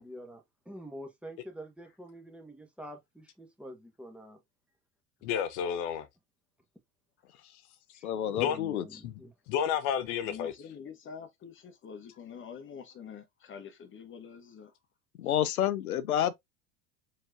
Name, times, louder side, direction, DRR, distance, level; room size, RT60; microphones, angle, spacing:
voice 1, 0.0-4.4 8.0-9.3, equal, 5° right, 1.2 m, -46 dB
voice 2, 5.2-6.1 8.4-8.6 9.0-9.1 9.5-10.5, left 8 dB, 55° left, 0.8 m, -30 dB
voice 3, 8.0-8.8 15.2-16.4, left 11 dB, 85° left, 0.6 m, -29 dB
voice 4, 10.2-14.7 15.3-15.4, left 7 dB, 30° left, 1.0 m, -46 dB
4.6 x 3.1 x 2.5 m
hypercardioid pair, 85°, 42 cm